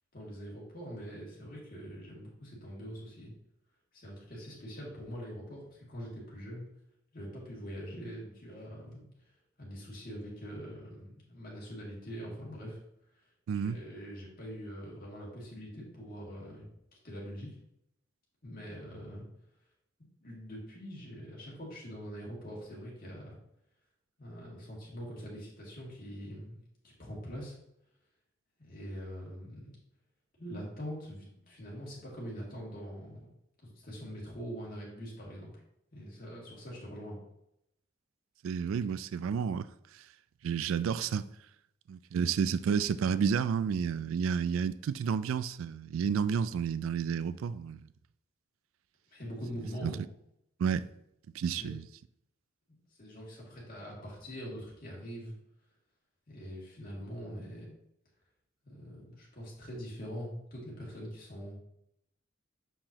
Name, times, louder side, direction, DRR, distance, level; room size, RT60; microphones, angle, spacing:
voice 1, 0.1-3.3 3.9-6.7 7.1-9.3 9.6-12.8 13.5-16.7 17.0-17.5 18.4-19.2 20.2-23.4 24.2-26.6 27.0-27.5 28.6-29.8 30.4-33.3 33.6-35.5 35.9-37.2 49.1-50.0 51.6-51.8 53.0-55.3 56.3-57.7 58.6-61.6, equal, 45° left, 2.3 m, -43 dB
voice 2, 13.5-13.8 38.4-39.7 40.4-41.2 41.9-47.8 49.8-50.0 50.6-50.9 51.3-51.9, right 6 dB, 80° right, 0.3 m, -30 dB
6.9 x 5.7 x 2.9 m
head